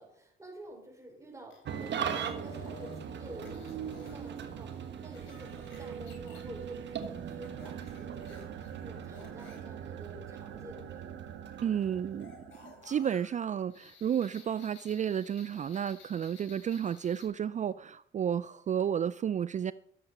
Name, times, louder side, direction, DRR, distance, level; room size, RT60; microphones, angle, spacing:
voice 1, 0.0-1.5 1.8-10.8, right 1 dB, 15° right, 5.5 m, -49 dB
sound 1, 1.5-3.0 3.4-4.3 4.7-6.4 7.4-9.6 12.2-17.3, left 4 dB, 75° left, 4.8 m, -55 dB
Engine starting / Idling, 1.6-12.2, right 7 dB, 65° right, 1.5 m, -41 dB
sound 2, 2.4-13.0, right 8 dB, 80° right, 1.4 m, -45 dB
voice 2, 11.6-12.3 12.6-19.7, right 9 dB, 40° right, 0.4 m, -32 dB
13.0 x 7.4 x 6.0 m
cardioid pair, 90°, 20 cm